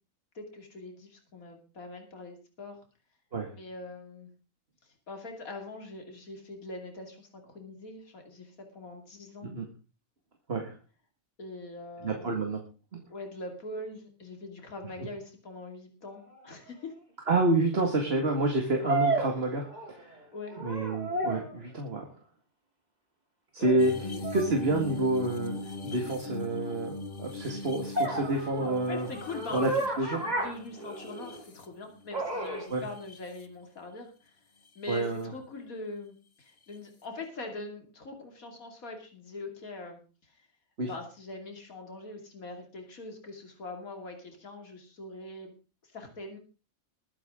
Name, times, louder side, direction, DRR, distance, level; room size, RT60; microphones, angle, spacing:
voice 1, 0.3-2.8 3.5-4.3 5.1-9.5 11.4-12.3 13.1-16.9 20.3-20.6 23.6-24.2 28.9-34.4 34.7-40.5 40.8-45.5 45.8-46.4, left 2 dB, 80° left, 3 dB, 3.1 m, -42 dB
voice 2, 12.0-12.6 12.9-13.0 17.3-20.2 20.6-22.1 23.5-23.9 24.3-25.6 25.8-29.1 29.5-29.7 30.0-30.5 32.7-32.9 34.9-35.3 40.8-40.9, right 2 dB, 45° right, 2 dB, 2.2 m, -28 dB
sound 1, 16.4-16.5 18.8-20.1 20.5-21.6 24.2-24.5 27.9-31.4 32.1-32.7, right 2 dB, 30° right, 3.3 m, -32 dB
sound 2, 23.8-32.1 32.7-33.4 34.7-35.0 36.7-36.8, left 3 dB, 40° left, 1.3 m, -40 dB
21.5 x 9.6 x 3.7 m, 0.34 s
omnidirectional pair, 1.5 m